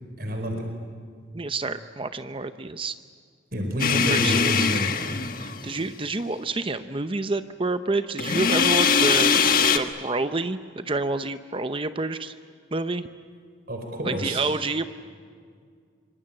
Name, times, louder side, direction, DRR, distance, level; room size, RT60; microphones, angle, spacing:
voice 1, 0.2-0.7 3.5-4.9 13.7-14.4, equal, 55° right, 3 dB, 4.6 m, -28 dB
voice 2, 1.3-3.0 3.9-4.7 5.4-12.4 12.7-13.1 14.0-14.9, right 3 dB, 30° right, 10 dB, 0.7 m, -28 dB
sound 1, 3.8-5.8 8.2-9.8, left 6 dB, 50° left, 1.4 m, -22 dB
25.5 x 25.0 x 8.9 m, 2.1 s
head